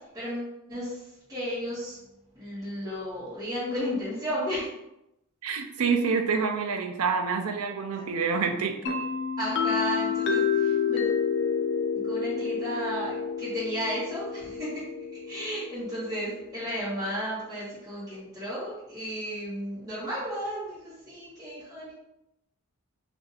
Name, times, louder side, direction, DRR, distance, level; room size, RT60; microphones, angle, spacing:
voice 1, 0.0-2.0 2.3-4.7 7.9-8.0 9.4-11.1 11.9-14.8 15.3-21.9, equal, 15° right, -12 dB, 1.1 m, -34 dB
voice 2, 5.4-9.0, right 5 dB, 80° right, 5 dB, 0.5 m, -27 dB
sound 1, 8.9-16.5, left 6 dB, 55° left, 0.4 m, -29 dB
2.6 x 2.5 x 4.0 m, 0.90 s
head